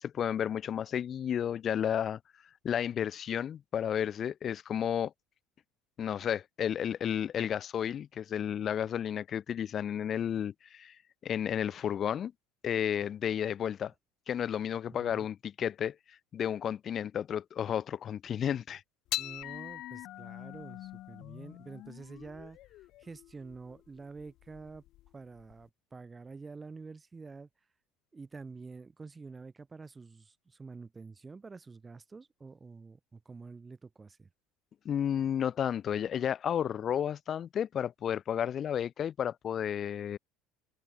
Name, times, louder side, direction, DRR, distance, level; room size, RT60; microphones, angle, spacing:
voice 1, 0.0-2.2 2.6-5.1 6.0-11.0 11.2-12.3 12.6-13.9 14.3-16.0 16.3-18.8 34.9-40.2, left 9 dB, 40° left, 0.3 m, -32 dB
voice 2, 14.9-15.3 19.1-24.8 25.1-27.5 28.1-34.3, right 4 dB, 20° right, 3.0 m, -48 dB
sound 1, 19.1-25.7, left 16 dB, 60° left, 0.7 m, -43 dB
supercardioid pair, 115°, 0 cm